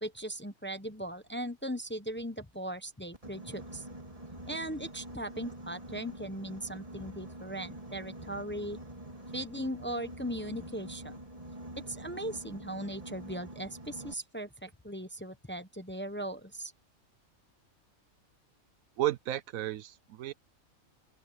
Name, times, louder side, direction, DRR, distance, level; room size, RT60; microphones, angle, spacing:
voice 1, 0.0-3.9 4.5-8.8 9.3-11.2 11.8-16.7, right 1 dB, 10° left, 0.9 m, -38 dB
Boat Water vehicle, 3.1-14.1, right 1 dB, 25° right, 3.2 m, -46 dB
voice 2, 19.0-20.3, right 14 dB, 75° right, 1.0 m, -33 dB
open air
omnidirectional pair, 1.5 m